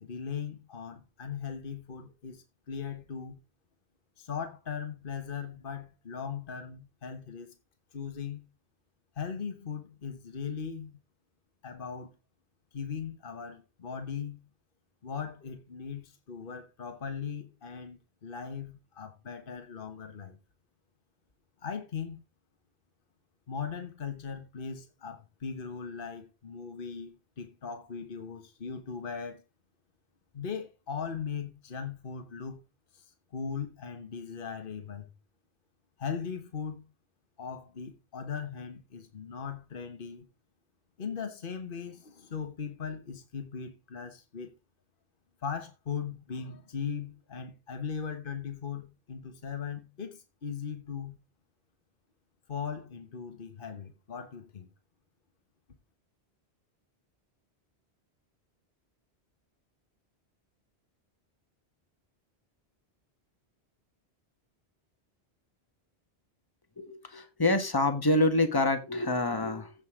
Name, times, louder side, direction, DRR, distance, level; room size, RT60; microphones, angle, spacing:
voice 1, 0.0-3.4 4.2-7.5 7.9-8.4 9.1-11.0 11.6-12.1 12.7-14.4 15.0-20.4 21.6-22.2 23.5-29.4 30.3-32.6 32.9-35.1 36.0-36.9 37.4-40.3 41.0-44.5 45.4-51.2 52.5-54.7, left 6 dB, 55° left, 1.5 m, -39 dB
voice 2, 66.8-69.7, left 2 dB, 20° left, 1.4 m, -26 dB
15.5 x 5.3 x 3.7 m
omnidirectional pair, 1.1 m